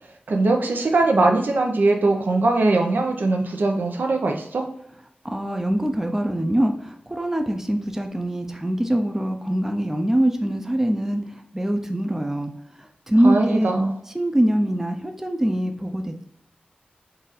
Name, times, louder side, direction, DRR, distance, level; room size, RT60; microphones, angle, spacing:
voice 1, 0.3-4.7 13.2-13.9, right 2 dB, 80° right, 3 dB, 0.6 m, -21 dB
voice 2, 5.2-12.5 12.8-13.8 14.1-16.2, right 1 dB, 10° right, 4 dB, 0.4 m, -23 dB
4.0 x 2.5 x 4.0 m, 0.75 s
wide cardioid pair, 90°, 3 cm